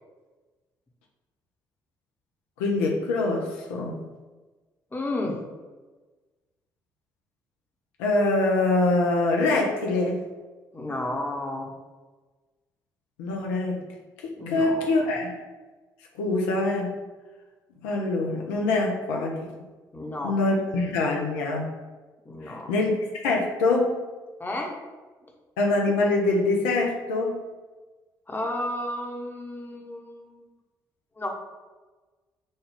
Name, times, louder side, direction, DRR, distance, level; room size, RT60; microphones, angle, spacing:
voice 1, 2.6-4.0 8.0-10.2 13.2-13.8 14.2-15.4 16.2-17.0 17.8-19.4 20.2-21.7 22.5-22.9 23.2-23.9 25.6-27.4, left 2 dB, 70° left, 0 dB, 0.5 m, -24 dB
voice 2, 4.9-5.4 10.7-11.7 14.4-14.9 19.9-20.4 22.2-22.7 24.4-24.8 28.3-30.4 31.2-31.3, left 1 dB, 20° left, 1 dB, 0.9 m, -32 dB
5.2 x 2.3 x 3.3 m, 1.3 s
figure-of-eight pair, 45°, 10 cm